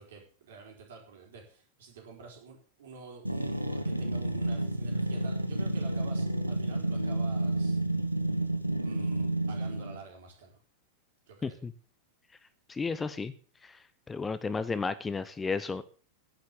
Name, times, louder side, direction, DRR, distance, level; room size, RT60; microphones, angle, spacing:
voice 1, 0.0-7.8 8.8-10.6 11.3-11.6, right 5 dB, 60° right, 2 dB, 4.7 m, -48 dB
sound 1, 3.2-10.0, right 1 dB, 90° right, 1.2 m, -30 dB
voice 2, 12.7-13.3 13.6-13.8 14.1-15.8, left 4 dB, 15° left, 14 dB, 0.8 m, -33 dB
10.5 x 10.0 x 7.0 m, 0.40 s
figure-of-eight pair, 90°, 0 cm